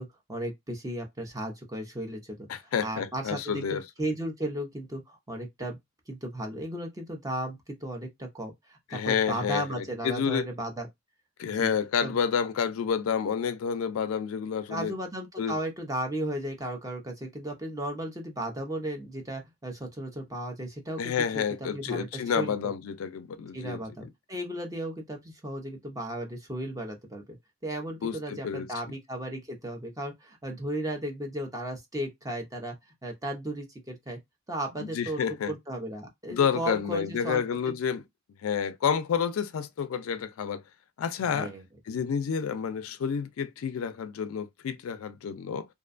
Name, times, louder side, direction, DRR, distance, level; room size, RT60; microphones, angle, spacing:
voice 1, 0.0-5.8 6.1-10.9 11.4-11.7 12.0-12.2 14.7-22.5 23.5-27.4 27.6-32.8 33.0-34.2 34.5-37.8 41.3-41.6, right 1 dB, 15° right, 0.5 m, -35 dB
voice 2, 2.5-3.8 8.9-10.5 11.4-14.9 15.4-15.6 21.0-23.8 28.0-28.7 34.8-35.5 36.3-38.0 38.4-40.6 41.0-41.5 41.9-45.6, left 7 dB, 75° left, 0.4 m, -29 dB
2.5 x 2.2 x 2.4 m
head